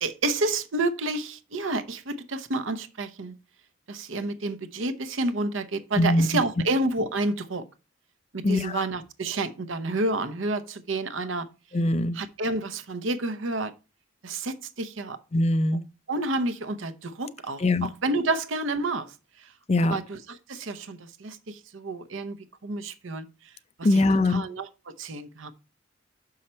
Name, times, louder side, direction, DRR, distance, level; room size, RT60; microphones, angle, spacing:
voice 1, 0.0-3.3 3.9-7.6 8.3-11.5 12.1-13.7 14.2-15.2 16.1-19.1 19.8-22.4 22.6-23.3 23.8-24.0 24.3-25.5, right 2 dB, 80° right, 0.8 m, -29 dB
voice 2, 6.0-6.3 8.4-8.9 11.7-12.2 15.3-15.8 17.6-17.9 19.7-20.0 23.8-24.4, left 2 dB, 35° left, 0.5 m, -22 dB
6.4 x 5.7 x 4.3 m
head